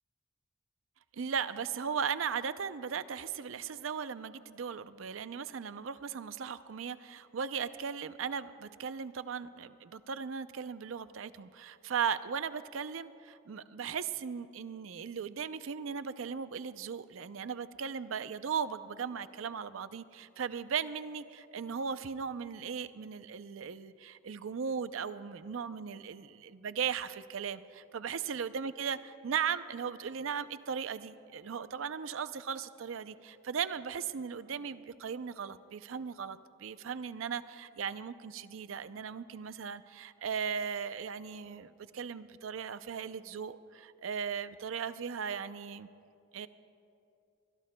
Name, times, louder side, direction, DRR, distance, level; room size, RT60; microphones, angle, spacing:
voice 1, 1.1-45.9 46.3-46.5, right 7 dB, 85° right, 13 dB, 0.5 m, -37 dB
24.0 x 20.5 x 2.2 m, 2.5 s
head